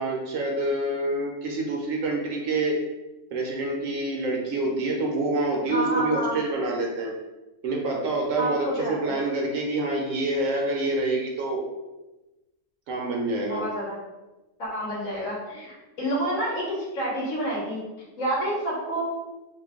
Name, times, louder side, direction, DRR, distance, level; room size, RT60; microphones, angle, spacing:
voice 1, 0.0-2.8 3.3-7.1 7.6-11.6 12.9-13.6, right 2 dB, 70° right, -1 dB, 1.0 m, -27 dB
voice 2, 5.7-6.4 8.4-9.2 13.4-14.0 14.6-17.8 18.2-19.0, right 1 dB, 70° left, -5 dB, 1.4 m, -29 dB
3.1 x 2.2 x 3.5 m, 1.1 s
omnidirectional pair, 1.4 m